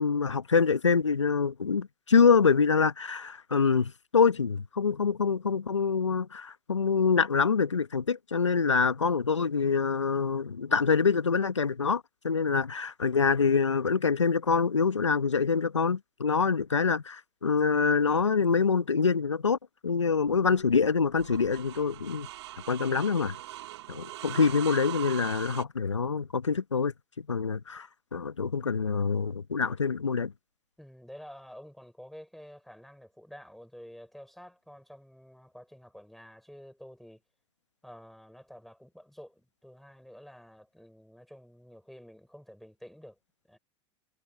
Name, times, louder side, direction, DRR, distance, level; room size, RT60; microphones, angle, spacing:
voice 1, 0.0-19.6 19.8-22.3 22.7-23.4 23.9-27.9 28.1-30.3, left 5 dB, 90° left, 1.4 m, -25 dB
sound 1, 20.3-25.6, right 15 dB, 65° right, 3.0 m, -41 dB
voice 2, 30.8-37.2 37.8-43.2 43.5-43.6, equal, ahead, 6.8 m, -50 dB
figure-of-eight pair, 85°, 15 cm